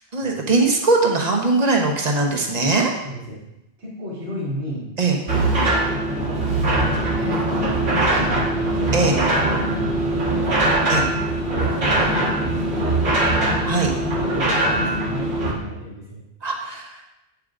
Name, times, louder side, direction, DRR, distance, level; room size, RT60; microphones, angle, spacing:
voice 1, 0.1-2.9 5.0-5.2 8.9-9.2 10.9-11.1 13.6-13.9 16.4-17.0, right 3 dB, 40° right, 1 dB, 1.1 m, -20 dB
voice 2, 3.0-3.4 3.8-4.8 5.5-8.8 9.5-9.7 9.9-10.9 11.5-13.5 14.0-16.2, equal, 85° right, -9 dB, 2.8 m, -33 dB
sound 1, 5.3-15.5, right 2 dB, 70° right, 1.8 m, -21 dB
8.5 x 8.0 x 2.5 m, 0.90 s
omnidirectional pair, 1.1 m